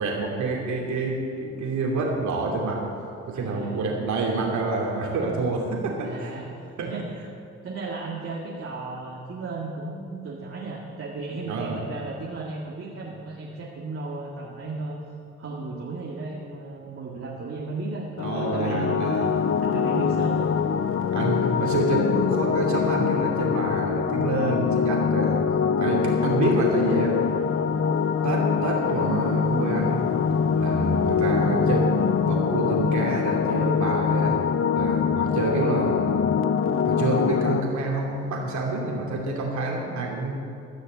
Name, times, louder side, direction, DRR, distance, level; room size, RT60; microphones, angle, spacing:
voice 1, 0.0-2.9 3.3-6.4 11.4-11.8 18.2-19.3 21.1-25.5 25.8-27.2 28.2-30.1 30.6-31.9 32.3-34.4 34.7-36.2 36.8-40.4, right 3 dB, 70° right, -1 dB, 2.9 m, -27 dB
voice 2, 3.3-3.9 6.0-6.5 6.8-7.0 7.6-15.0 15.4-19.3 19.6-20.5, right 3 dB, 45° right, -3 dB, 1.9 m, -34 dB
sound 1, 18.2-37.6, left 6 dB, 45° left, 0.6 m, -24 dB
14.5 x 6.5 x 8.1 m, 2.6 s
cardioid pair, 90°, 30 cm